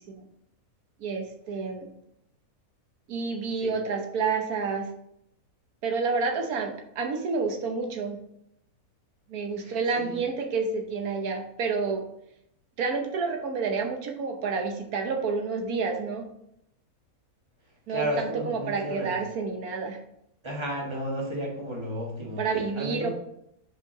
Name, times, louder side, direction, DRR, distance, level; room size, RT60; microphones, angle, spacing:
voice 1, 1.0-1.9 3.1-4.9 5.8-8.2 9.3-12.0 12.8-16.3 17.9-20.0 22.4-23.1, right 4 dB, 85° right, 3 dB, 1.4 m, -29 dB
voice 2, 9.6-10.2 17.9-19.2 20.4-22.4 22.7-23.1, equal, 20° right, -2 dB, 1.6 m, -33 dB
5.4 x 5.0 x 3.8 m, 0.75 s
omnidirectional pair, 1.5 m